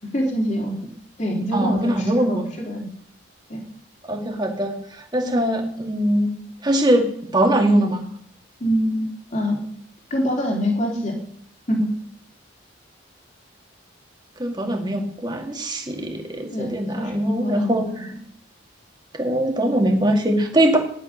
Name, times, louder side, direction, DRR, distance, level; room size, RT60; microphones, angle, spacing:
voice 1, 0.0-0.7 1.2-2.9 3.5-3.6 5.2-5.4 8.6-9.6 10.1-11.1 11.7-11.9 16.5-16.7 17.0-18.0, equal, 35° left, 0 dB, 3.1 m, -25 dB
voice 2, 1.5-2.5 4.1-6.3 6.6-7.1 7.3-8.1 14.4-17.9 19.1-20.8, right 1 dB, 20° right, 2 dB, 2.2 m, -21 dB
14.5 x 11.0 x 6.5 m, 0.63 s
head